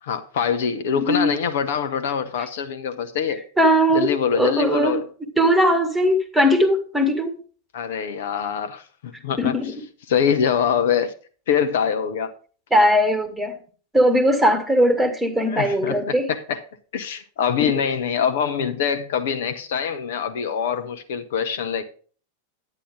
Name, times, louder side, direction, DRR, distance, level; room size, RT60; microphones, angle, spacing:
voice 1, 0.0-3.4 3.9-5.1 7.7-9.6 10.1-11.2 11.5-12.3 15.5-16.6 16.9-21.8, left 7 dB, 55° left, 0.8 m, -24 dB
voice 2, 0.9-1.3 3.6-4.1 4.3-5.0 5.4-7.3 9.4-9.7 12.7-13.6 13.9-16.3 17.6-17.8, equal, 5° right, 1.7 m, -19 dB
10.0 x 9.8 x 3.7 m
figure-of-eight pair, 90°, 0 cm